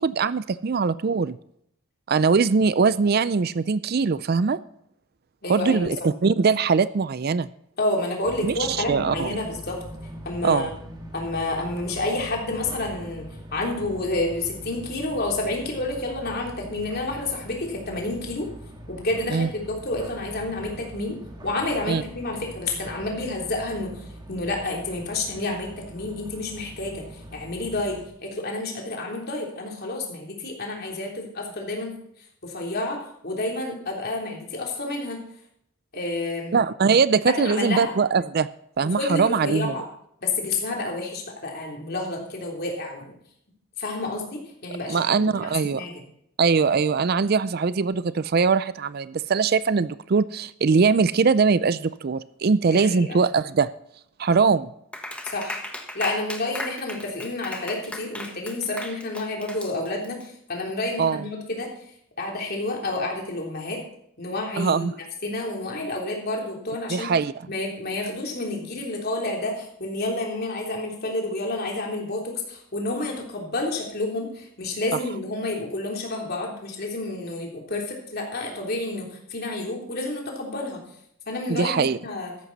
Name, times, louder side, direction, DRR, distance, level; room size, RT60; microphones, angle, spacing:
voice 1, 0.0-1.4 2.1-4.6 5.5-7.5 8.4-9.4 10.4-10.7 19.3-19.5 21.9-22.0 36.5-38.5 38.8-39.8 44.9-45.8 46.4-53.7 54.2-54.7 61.0-61.2 64.6-64.9 66.9-67.3 81.5-82.0, right 5 dB, 45° right, 16 dB, 0.4 m, -21 dB
voice 2, 5.4-5.9 7.8-9.8 10.2-10.7 11.1-18.5 18.9-21.2 21.4-23.9 24.3-27.0 27.3-28.0 28.2-31.9 32.4-33.0 33.2-35.2 35.9-36.6 37.3-37.9 39.0-39.8 40.2-43.1 43.8-45.5 45.8-45.9 52.7-53.2 55.2-55.6 55.9-61.7 62.2-63.8 64.2-64.9 65.2-67.1 67.5-80.8 81.3-82.3, left 2 dB, 45° left, 0 dB, 3.4 m, -29 dB
sound 1, 8.2-28.1, equal, 20° right, 1.7 m, -42 dB
Clapping, 54.9-60.2, left 1 dB, 5° left, 1.4 m, -36 dB
14.0 x 11.0 x 4.1 m, 0.71 s
head